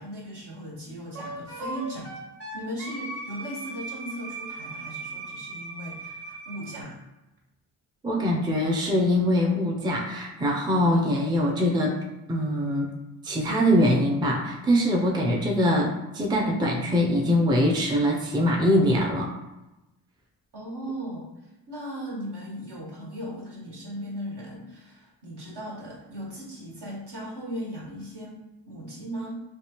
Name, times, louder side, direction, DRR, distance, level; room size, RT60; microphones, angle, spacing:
voice 1, 0.0-2.1 2.5-7.0 20.5-21.3 21.7-29.4, equal, 55° right, -4 dB, 1.5 m, -37 dB
Wind instrument woodwind instrument, 1.1-6.8, right 2 dB, 30° right, 1.2 m, -38 dB
voice 2, 8.0-11.9 12.3-12.9 13.2-19.3, equal, 10° right, -1 dB, 0.5 m, -23 dB
3.3 x 2.4 x 2.9 m, 1.0 s
supercardioid pair, 50°, 46 cm